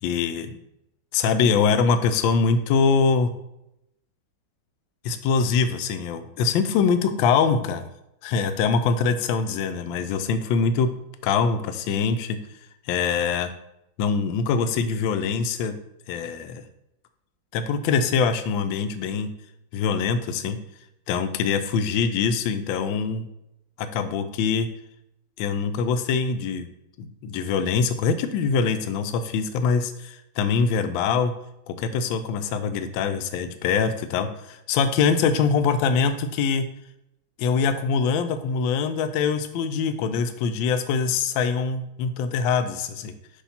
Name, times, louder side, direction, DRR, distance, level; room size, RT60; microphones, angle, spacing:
voice 1, 0.0-0.6 1.1-3.3 5.0-7.9 8.2-10.9 11.2-12.4 12.9-13.5 14.0-15.8 16.1-16.6 17.5-19.3 19.7-20.6 21.1-23.3 23.8-24.7 25.4-26.7 27.0-31.3 31.7-36.7 37.4-43.1, left 5 dB, 75° left, 9 dB, 1.2 m, -23 dB
6.7 x 2.8 x 5.6 m, 0.84 s
omnidirectional pair, 2.3 m